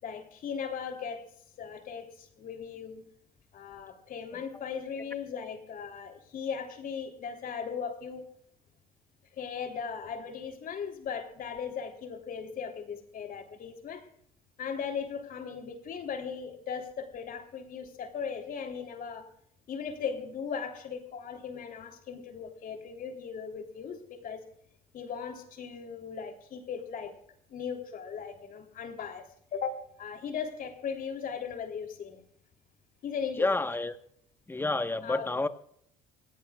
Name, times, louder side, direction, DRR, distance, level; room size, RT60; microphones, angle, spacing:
voice 1, 0.0-1.3 1.6-3.0 3.5-8.2 9.3-14.1 14.6-19.3 19.7-24.4 24.9-27.2 27.5-29.3 29.5-32.2 33.0-33.6 35.0-35.3, left 6 dB, 55° left, 4 dB, 3.4 m, -38 dB
voice 2, 33.4-34.0 34.5-35.5, left 2 dB, 15° left, 10 dB, 1.2 m, -29 dB
26.5 x 17.0 x 2.4 m, 0.70 s
cardioid pair, 110°, 17 cm